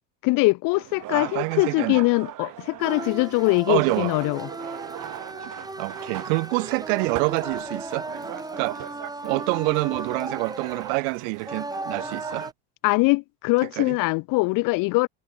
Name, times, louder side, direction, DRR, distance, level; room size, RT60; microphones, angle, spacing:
voice 1, 0.2-4.5 12.8-15.1, left 25 dB, 60° left, 0.5 m, -22 dB
sound 1, 0.7-12.5, right 15 dB, 55° right, 2.6 m, -40 dB
voice 2, 1.1-2.0 3.7-4.1 5.4-5.5 5.8-8.1 8.6-8.8 9.2-12.5 13.8-14.0, right 33 dB, 85° right, 0.8 m, -26 dB
sound 2, 2.8-12.5, right 2 dB, 10° right, 4.7 m, -36 dB
supercardioid pair, 100°, 37 cm